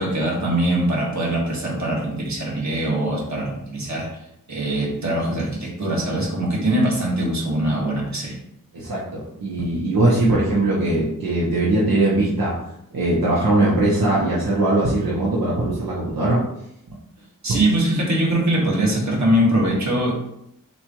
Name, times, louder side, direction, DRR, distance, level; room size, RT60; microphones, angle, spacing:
voice 1, 0.0-4.1 4.5-8.4 17.4-20.1, right 1 dB, 55° right, -4 dB, 1.6 m, -22 dB
voice 2, 8.7-12.6 12.9-16.4 17.5-17.6, right 2 dB, 80° right, -6 dB, 1.0 m, -20 dB
6.7 x 2.4 x 3.0 m, 0.78 s
wide cardioid pair, 90°, 34 cm